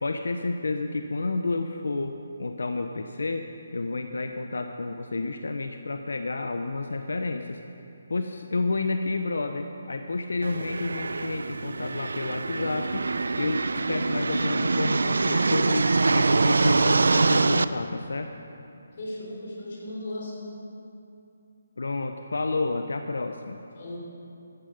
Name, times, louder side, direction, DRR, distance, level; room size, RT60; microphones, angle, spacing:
voice 1, 0.0-3.5 3.7-7.6 8.1-13.1 13.4-18.3 21.8-23.6, left 3 dB, 85° left, 6 dB, 0.7 m, -30 dB
sound 1, 10.4-17.6, right 3 dB, 85° right, 0.4 m, -24 dB
voice 2, 19.0-20.7 23.7-24.0, left 1 dB, 40° left, -2 dB, 3.2 m, -36 dB
13.0 x 12.0 x 5.2 m, 2.7 s
hypercardioid pair, 170°, 0 cm